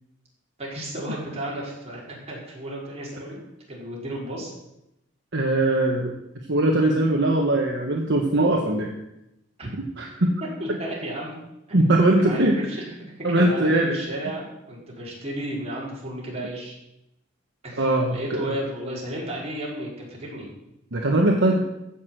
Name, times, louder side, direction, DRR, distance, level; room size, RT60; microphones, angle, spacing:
voice 1, 0.6-3.4 3.7-4.5 9.6-9.7 10.6-11.4 11.7-12.8 13.4-16.8 17.6-20.5, right 1 dB, 30° right, -4 dB, 4.9 m, -33 dB
voice 2, 5.3-6.1 6.5-8.9 10.0-10.3 10.7-10.8 11.7-12.6 13.2-14.0 17.8-18.5 20.9-21.6, right 1 dB, 60° right, 0 dB, 1.4 m, -21 dB
14.5 x 6.5 x 7.9 m, 0.88 s
head